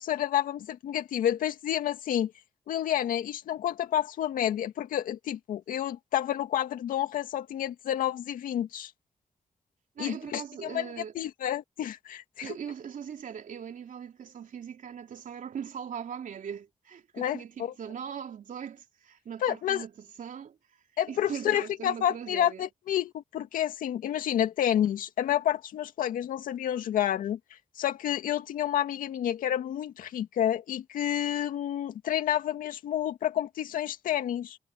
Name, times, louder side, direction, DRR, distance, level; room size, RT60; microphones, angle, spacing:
voice 1, 0.0-2.3 2.7-8.9 10.0-10.9 11.2-12.6 17.1-17.7 19.4-19.8 21.0-27.4 27.8-34.6, left 11 dB, 85° left, 2.1 m, -29 dB
voice 2, 10.0-11.2 12.4-20.6 21.1-22.7, right 8 dB, 70° right, 3.2 m, -40 dB
supercardioid pair, 45°, 14 cm